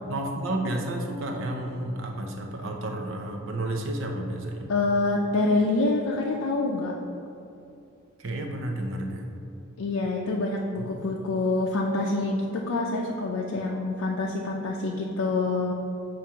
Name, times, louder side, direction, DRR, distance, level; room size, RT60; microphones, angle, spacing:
voice 1, 0.0-4.7 8.2-9.3 10.8-10.9, right 1 dB, 70° right, 2 dB, 0.7 m, -31 dB
voice 2, 4.7-6.9 9.8-15.7, left 2 dB, 85° left, -1 dB, 0.5 m, -26 dB
7.4 x 2.5 x 5.5 m, 2.6 s
head